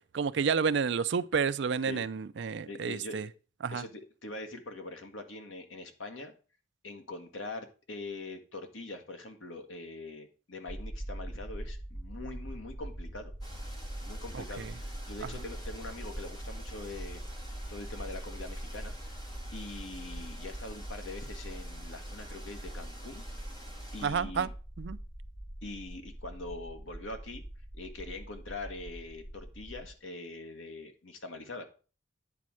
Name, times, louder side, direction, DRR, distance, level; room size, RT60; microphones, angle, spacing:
voice 1, 0.1-3.3 3.6-3.8 14.3-14.7 15.2-15.3 24.0-24.5 24.8-25.0, right 6 dB, 65° right, 0.4 m, -30 dB
voice 2, 2.7-3.3 3.7-6.3 6.8-13.3 14.0-17.2 17.7-18.9 19.5-23.2 23.9-24.5 25.6-27.4 27.7-31.6, left 2 dB, 85° left, 1.5 m, -43 dB
sound 1, 10.7-29.9, right 1 dB, ahead, 0.5 m, -42 dB
sound 2, 13.4-24.1, equal, 20° left, 1.9 m, -50 dB
9.5 x 4.2 x 6.2 m
head